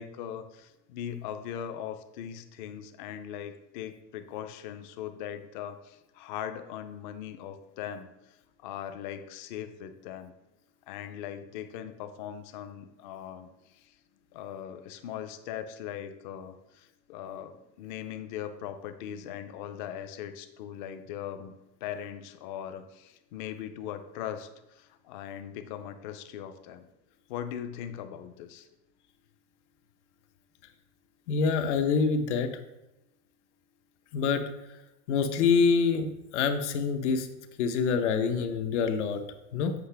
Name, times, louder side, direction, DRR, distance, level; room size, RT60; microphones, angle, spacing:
voice 1, 0.0-8.4 8.6-10.3 10.9-13.9 14.3-21.5 21.8-26.8 27.3-28.7, left 9 dB, 45° left, 9 dB, 0.5 m, -40 dB
voice 2, 31.3-32.5 34.1-34.5 35.1-37.3 37.6-39.2 39.5-39.7, left 5 dB, 80° left, 7 dB, 1.0 m, -26 dB
8.0 x 5.8 x 3.4 m, 0.94 s
supercardioid pair, 180°, 35 cm